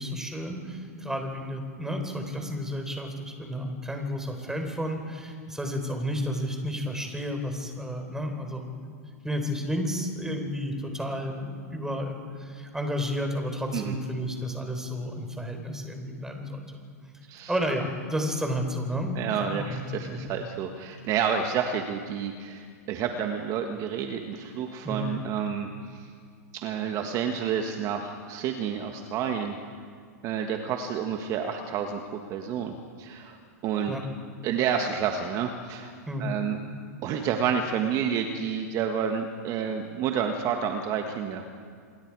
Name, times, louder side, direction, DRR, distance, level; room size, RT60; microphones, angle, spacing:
voice 1, 0.0-8.6 9.2-16.6 17.5-20.2 24.8-25.1 33.9-34.1 36.1-36.3, equal, 5° right, 4 dB, 4.2 m, -32 dB
voice 2, 19.1-26.0 26.5-29.6 30.2-33.9 34.4-35.9 36.2-36.6 37.0-41.6, right 7 dB, 40° right, 5 dB, 1.7 m, -29 dB
27.5 x 21.0 x 4.9 m, 2.1 s
hypercardioid pair, 110°, 9 cm